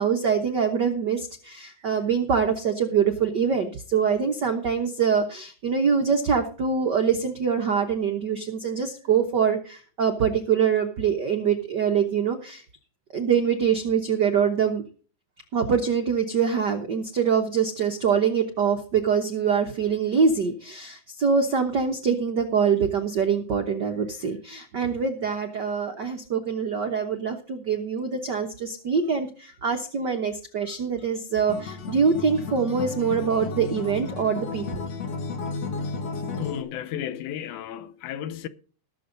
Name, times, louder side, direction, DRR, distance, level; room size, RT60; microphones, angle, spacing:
voice 1, 0.0-12.6 13.1-14.8 15.5-34.6, right 6 dB, 85° right, 0.9 m, -24 dB
Acoustic guitar, 31.5-36.6, left 4 dB, 55° left, 2.2 m, -33 dB
voice 2, 36.3-38.5, left 10 dB, 75° left, 2.2 m, -33 dB
19.0 x 7.1 x 3.9 m
omnidirectional pair, 3.8 m